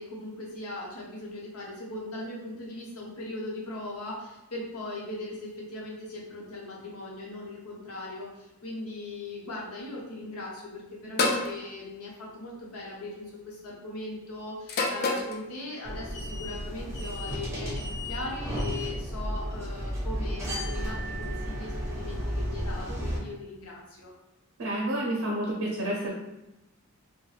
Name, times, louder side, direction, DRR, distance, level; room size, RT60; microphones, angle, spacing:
voice 1, 0.0-24.1, left 2 dB, 80° left, -4 dB, 0.8 m, -39 dB
sound 1, 11.2-11.5 12.7-13.0 14.7-15.4, left 3 dB, 45° left, 0.4 m, -27 dB
sound 2, 15.8-23.2, equal, 15° right, 0.5 m, -33 dB
voice 2, 24.6-26.1, right 1 dB, 60° right, -3 dB, 0.5 m, -29 dB
2.3 x 2.1 x 3.1 m, 0.94 s
head